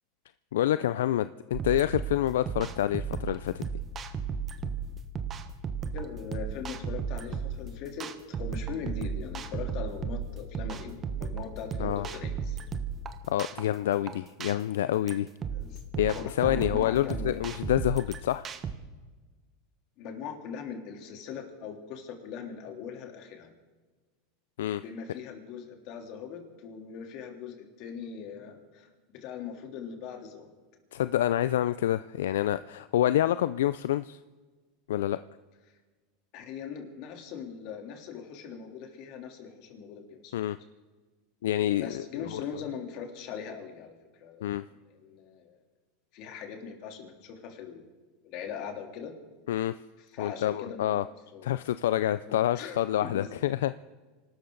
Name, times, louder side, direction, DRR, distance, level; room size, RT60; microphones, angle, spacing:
voice 1, 0.5-3.6 11.8-12.1 13.3-15.3 16.0-18.5 24.6-24.8 30.9-34.2 34.9-35.2 40.3-40.6 41.4-42.4 44.4-44.7 49.5-49.7 50.2-51.0 51.4-53.8, left 12 dB, 85° left, 14 dB, 0.4 m, -27 dB
sound 1, 1.5-18.7, right 6 dB, 30° right, 1.2 m, -35 dB
voice 2, 5.9-12.6 15.5-17.4 20.0-23.5 24.8-28.9 29.1-30.5 36.3-40.3 41.8-43.9 44.2-45.6 46.1-47.8 48.2-49.1 50.1-51.5 52.3-53.3, left 7 dB, 55° left, 3 dB, 3.2 m, -41 dB
26.0 x 13.0 x 4.0 m, 1.3 s
supercardioid pair, 115°, 0 cm